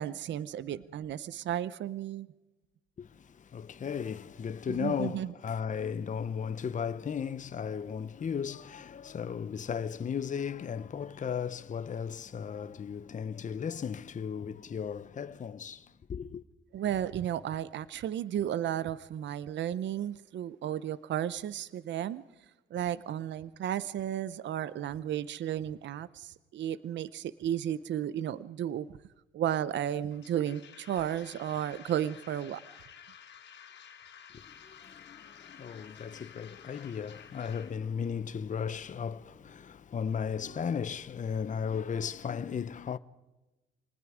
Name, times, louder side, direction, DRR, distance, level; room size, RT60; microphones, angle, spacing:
voice 1, 0.0-2.3 4.7-5.3 16.7-22.2 22.7-28.9 29.3-32.6, right 10 dB, 65° right, 0.7 m, -33 dB
voice 2, 3.0-16.4 34.3-43.0, left 7 dB, 40° left, 0.9 m, -36 dB
sound 1, 30.1-37.7, left 8 dB, 65° left, 3.2 m, -52 dB
27.5 x 19.5 x 5.0 m
cardioid pair, 90°, 20 cm